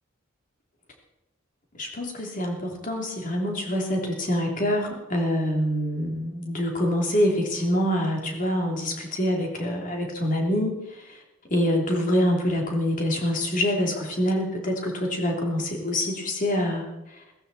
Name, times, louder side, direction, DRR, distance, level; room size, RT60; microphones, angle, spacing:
voice 1, 1.8-11.2 11.5-16.9, equal, 40° left, 0 dB, 3.0 m, -25 dB
17.0 x 15.5 x 4.2 m, 0.95 s
head